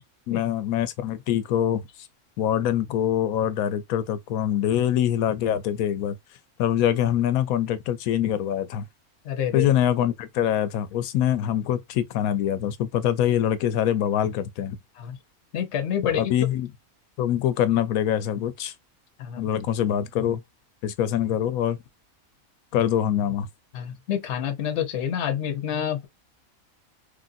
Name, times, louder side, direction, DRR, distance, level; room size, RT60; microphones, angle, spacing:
voice 1, 0.3-2.1 2.4-6.1 6.6-8.9 9.5-14.8 16.1-16.7 17.2-18.7 19.4-20.4 20.8-21.8 22.7-23.5, left 10 dB, 90° left, 1.0 m, -24 dB
voice 2, 9.2-9.7 15.0-15.2 15.5-16.3 19.2-19.5 23.7-26.1, left 9 dB, 60° left, 1.0 m, -28 dB
3.2 x 2.6 x 2.5 m
omnidirectional pair, 1.5 m